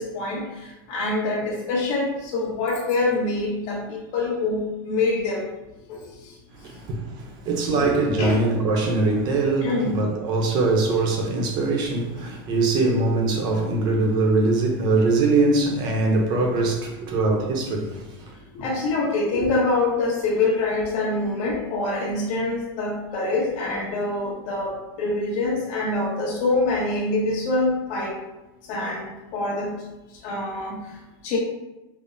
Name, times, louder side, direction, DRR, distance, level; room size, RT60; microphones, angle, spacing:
voice 1, 0.0-5.4 5.9-6.4 7.6-7.9 8.2-8.4 9.6-10.0 18.5-28.2 28.6-29.8 30.1-31.4, left 2 dB, 50° left, 1.1 m, -25 dB
voice 2, 6.5-18.3, right 3 dB, 35° right, 0.7 m, -22 dB
5.3 x 2.0 x 2.6 m
supercardioid pair, 155°, 13 cm